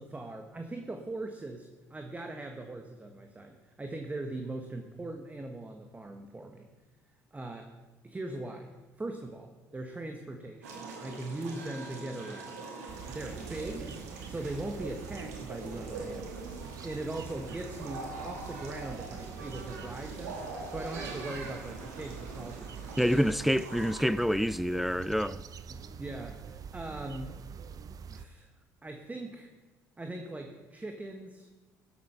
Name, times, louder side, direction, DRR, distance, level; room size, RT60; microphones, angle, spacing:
voice 1, 0.0-6.7 7.3-7.7 8.0-8.7 9.0-12.6 13.1-20.4 20.7-23.5 25.7-27.4 28.1-28.5 28.8-29.5 30.0-31.5, right 2 dB, 15° right, 1.4 m, -40 dB
sound 1, 10.6-24.1, right 3 dB, 85° right, 2.3 m, -43 dB
sound 2, 12.9-28.2, right 7 dB, 45° right, 0.7 m, -45 dB
voice 2, 23.0-25.4, equal, ahead, 0.4 m, -27 dB
16.5 x 7.9 x 5.7 m
hypercardioid pair, 65°, 8 cm